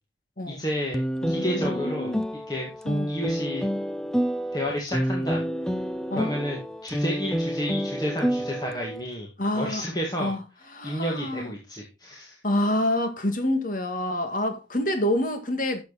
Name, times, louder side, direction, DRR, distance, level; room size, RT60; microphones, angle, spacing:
voice 1, 0.5-2.1 2.5-2.7 3.1-3.6 4.5-5.4 6.1-9.3 9.5-10.3 10.8-12.4, equal, 20° left, 1.9 m, -31 dB
sound 1, 0.9-9.0, equal, 5° left, 0.5 m, -28 dB
voice 2, 1.2-2.2 2.9-3.2 6.1-6.4 9.4-9.8 10.2-10.4 10.7-11.5 12.4-15.8, left 1 dB, 45° left, 1.9 m, -27 dB
11.0 x 7.2 x 4.1 m
head